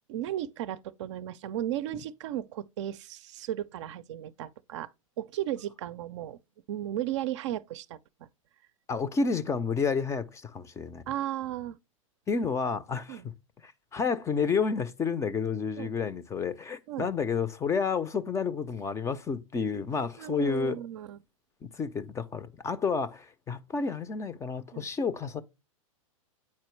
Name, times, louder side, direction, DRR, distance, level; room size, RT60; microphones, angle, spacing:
voice 1, 0.1-4.9 5.2-6.4 6.7-8.3 11.1-11.8 13.1-13.3 15.8-15.9 16.9-17.1 20.2-21.2 24.7-24.9, right 12 dB, 60° right, 0.5 m, -35 dB
voice 2, 8.9-11.0 12.3-13.2 13.6-20.8 21.6-25.4, left 5 dB, 15° left, 0.5 m, -30 dB
8.4 x 4.3 x 3.1 m
hypercardioid pair, 105°, 18 cm